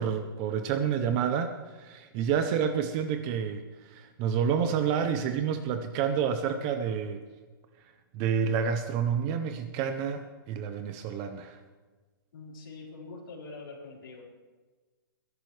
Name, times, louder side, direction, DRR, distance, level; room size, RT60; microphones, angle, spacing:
voice 1, 0.0-7.2 8.1-11.6, right 7 dB, 20° right, 8 dB, 0.5 m, -29 dB
voice 2, 12.3-14.2, left 3 dB, 65° left, -4 dB, 4.4 m, -44 dB
21.0 x 11.0 x 3.2 m, 1.3 s
hypercardioid pair, 175°, 12 cm